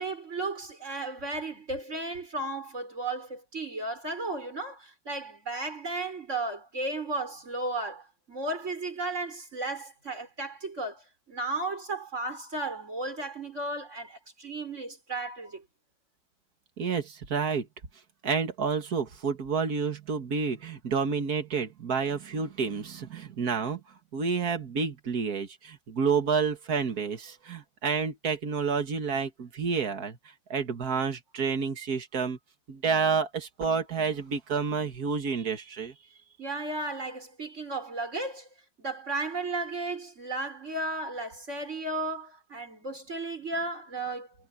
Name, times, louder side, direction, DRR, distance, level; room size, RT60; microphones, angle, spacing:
voice 1, 0.0-15.6 36.4-38.5 38.8-44.3, right 2 dB, 50° right, 5.7 m, -34 dB
voice 2, 16.8-17.7 18.2-23.8 24.1-30.2 30.5-32.4 32.7-35.9, right 5 dB, 85° right, 2.3 m, -29 dB
omnidirectional pair, 1.6 m